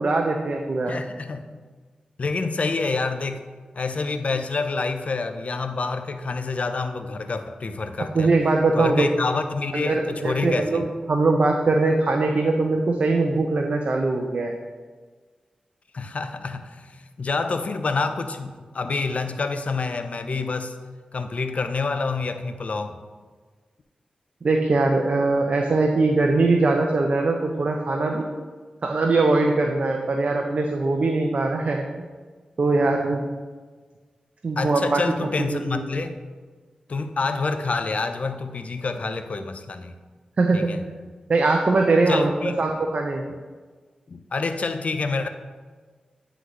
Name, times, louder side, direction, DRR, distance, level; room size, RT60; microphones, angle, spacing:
voice 1, 0.0-1.0 8.1-9.1 9.7-14.6 24.4-28.2 28.8-32.1 32.6-33.2 34.4-35.0 35.4-35.8 40.4-40.7 41.3-43.2, right 3 dB, 55° right, 2 dB, 0.5 m, -21 dB
voice 2, 0.9-1.4 2.2-3.4 3.7-8.3 8.7-10.8 15.9-20.7 21.1-23.0 34.6-36.2 36.9-39.9 40.5-40.8 42.1-42.6 44.1-45.3, left 4 dB, 55° left, 8 dB, 0.5 m, -27 dB
9.2 x 3.9 x 3.1 m, 1.4 s
cardioid pair, 50°, 3 cm